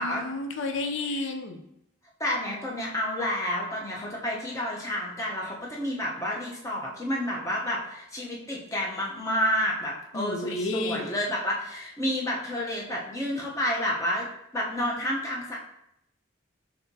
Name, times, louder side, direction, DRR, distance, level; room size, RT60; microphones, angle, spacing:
voice 1, 0.0-1.7 10.1-11.1, left 2 dB, 65° left, 5 dB, 0.5 m, -31 dB
voice 2, 2.2-14.3 14.5-15.6, equal, 15° left, -3 dB, 0.8 m, -30 dB
5.6 x 3.5 x 2.7 m, 0.79 s
head